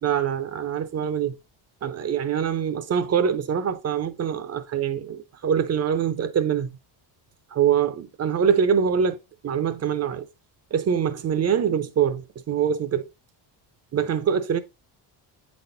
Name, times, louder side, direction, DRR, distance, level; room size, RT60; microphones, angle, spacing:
voice 1, 0.0-1.4 1.8-6.8 7.5-9.2 9.4-10.3 10.7-13.1 13.9-14.6, right 7 dB, 35° right, 0.6 m, -24 dB
8.5 x 4.2 x 2.6 m
cardioid pair, 150°, 47 cm